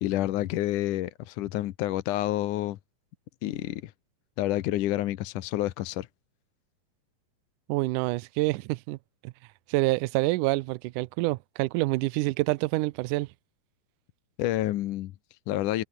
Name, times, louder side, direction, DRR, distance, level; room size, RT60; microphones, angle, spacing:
voice 1, 0.0-2.8 3.4-3.9 4.4-6.1 14.4-15.8, left 14 dB, 70° left, 2.3 m, -29 dB
voice 2, 7.7-9.0 9.2-9.3 9.7-13.3, right 20 dB, 80° right, 1.9 m, -27 dB
omnidirectional pair, 4.1 m